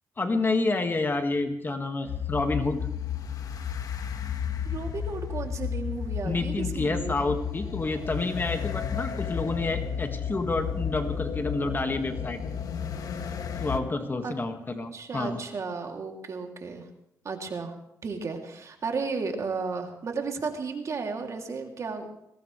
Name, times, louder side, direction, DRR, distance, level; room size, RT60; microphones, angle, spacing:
voice 1, 0.2-2.9 6.2-12.4 13.6-15.4, left 3 dB, 30° left, 6 dB, 1.8 m, -29 dB
sound 1, 2.1-13.8, left 7 dB, 65° left, 1.5 m, -33 dB
voice 2, 4.6-7.3 14.2-14.3 14.9-16.9 17.2-17.7 18.0-22.1, right 4 dB, 50° right, 3 dB, 2.9 m, -34 dB
21.5 x 17.5 x 3.3 m, 0.78 s
cardioid pair, 85°, 7 cm